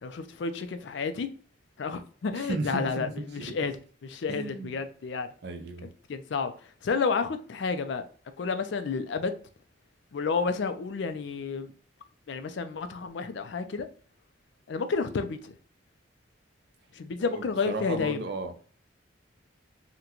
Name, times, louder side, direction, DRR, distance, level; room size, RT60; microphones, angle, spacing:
voice 1, 0.0-1.3 1.8-3.7 4.0-5.3 5.8-6.5 6.8-8.0 8.4-9.4 10.1-11.7 12.3-13.9 14.7-15.5 16.9-18.2, left 4 dB, 65° left, 0.4 m, -31 dB
voice 2, 2.4-3.7 4.3-4.8 5.4-5.9 17.3-18.7, right 3 dB, 55° right, 0.5 m, -35 dB
3.8 x 2.2 x 2.9 m
head